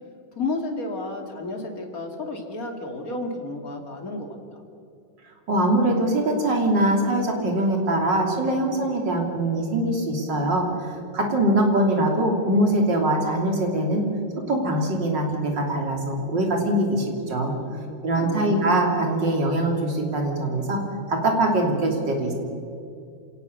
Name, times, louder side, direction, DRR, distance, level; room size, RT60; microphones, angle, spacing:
voice 1, 0.4-4.6 17.4-18.6, left 2 dB, 50° left, 3 dB, 3.1 m, -32 dB
voice 2, 5.5-14.0 14.4-17.5 18.0-20.8 21.1-22.3, right 1 dB, 75° right, 2 dB, 3.9 m, -23 dB
27.5 x 18.0 x 7.0 m, 2.5 s
omnidirectional pair, 2.0 m